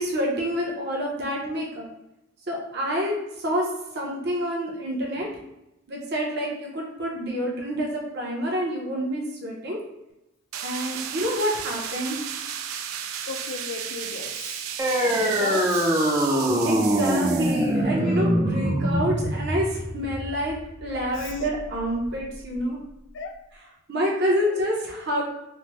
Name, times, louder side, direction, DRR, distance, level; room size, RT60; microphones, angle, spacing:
voice 1, 0.0-1.9 2.5-3.7 3.9-5.3 5.9-9.8 10.6-12.2 16.6-22.8 23.9-25.2, equal, 50° right, -2 dB, 0.8 m, -28 dB
sound 1, 10.5-17.7, right 8 dB, 80° right, 0.3 m, -34 dB
voice 2, 13.3-14.7 15.0-15.9 21.1-21.5 23.1-23.4, left 4 dB, 60° left, 6 dB, 0.3 m, -35 dB
sound 2, 14.8-21.8, right 1 dB, 15° right, 0.4 m, -24 dB
3.2 x 2.1 x 3.1 m, 0.89 s
head